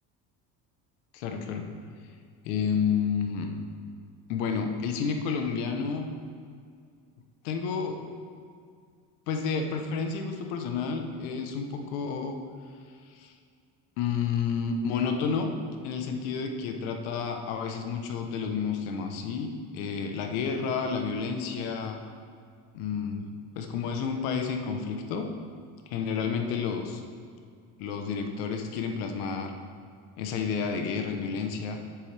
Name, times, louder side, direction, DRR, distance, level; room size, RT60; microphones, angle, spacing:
voice 1, 1.1-1.7 2.4-3.5 4.3-6.1 7.4-8.0 9.3-12.4 13.1-13.3 14.0-15.5 15.8-22.0 22.7-23.3 23.6-25.3 25.9-27.0 27.8-29.5 30.2-31.8, left 6 dB, 90° left, 5 dB, 1.0 m, -30 dB
10.0 x 9.8 x 3.4 m, 2.2 s
supercardioid pair, 95°, 42 cm